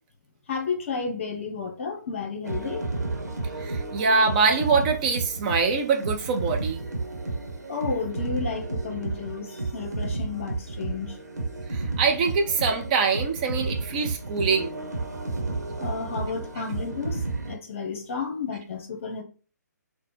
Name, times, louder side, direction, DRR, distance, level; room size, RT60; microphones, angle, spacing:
voice 1, 0.5-2.8 7.7-11.2 15.8-19.2, left 5 dB, 45° left, 0.9 m, -32 dB
sound 1, 2.4-17.5, right 3 dB, 70° right, 1.0 m, -32 dB
voice 2, 3.6-6.8 11.7-14.7, right 4 dB, 25° right, 0.5 m, -24 dB
3.8 x 2.1 x 4.4 m
figure-of-eight pair, 130°, 10 cm